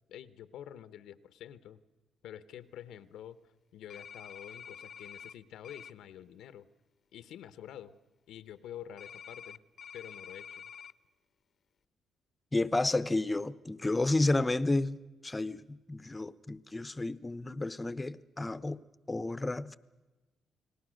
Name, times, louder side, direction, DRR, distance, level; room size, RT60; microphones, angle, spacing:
voice 1, 0.1-1.8 2.2-6.7 7.1-7.9 8.3-9.6 9.9-10.7, left 10 dB, 85° left, 14 dB, 0.9 m, -48 dB
sound 1, 3.9-5.3 5.6-5.9 9.0-10.9, left 7 dB, 50° left, 0.8 m, -48 dB
voice 2, 12.5-18.8 19.1-19.8, left 2 dB, 15° left, 16 dB, 0.8 m, -31 dB
29.5 x 19.5 x 6.4 m, 1.2 s
cardioid pair, 90°, 0 cm